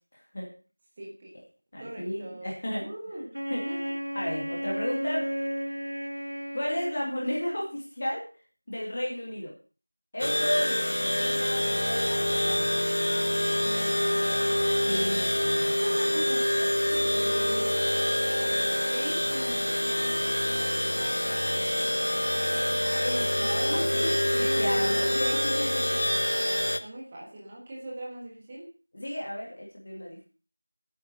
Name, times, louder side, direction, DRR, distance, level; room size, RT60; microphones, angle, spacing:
voice 1, 1.0-1.4 1.8-3.3 3.6-3.9 10.5-10.7 13.6-14.2 15.7-18.0 18.4-26.2 26.8-28.7, right 1 dB, 10° right, -3 dB, 1.4 m, -40 dB
voice 2, 1.7-2.9 3.5-3.6 4.1-5.3 6.5-8.3 8.7-9.5 10.1-12.7 14.9-16.0 16.9-17.1 22.8-24.1 24.4-26.0 28.9-30.2, left 1 dB, 20° left, -3 dB, 2.3 m, -33 dB
Wind instrument woodwind instrument, 3.3-7.7, equal, 85° right, 2.3 m, -34 dB
sound 1, 10.2-26.8, left 1 dB, 45° left, 1.1 m, -26 dB
11.5 x 9.3 x 6.8 m, 0.37 s
figure-of-eight pair, 175°, 0 cm